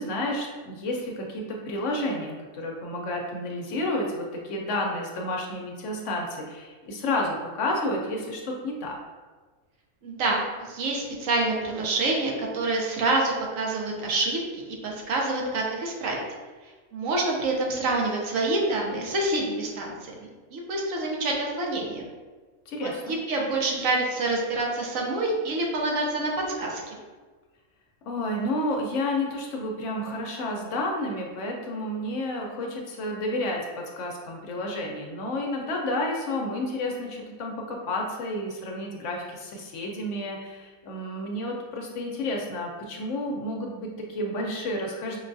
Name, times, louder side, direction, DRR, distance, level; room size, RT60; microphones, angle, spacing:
voice 1, 0.0-9.0 22.7-23.2 28.1-45.2, left 1 dB, 65° left, 0 dB, 0.9 m, -31 dB
voice 2, 10.0-16.2 16.9-22.1 22.8-26.3 26.6-26.8, right 2 dB, 70° right, -1 dB, 1.1 m, -27 dB
5.2 x 2.3 x 2.6 m, 1.4 s
omnidirectional pair, 1.4 m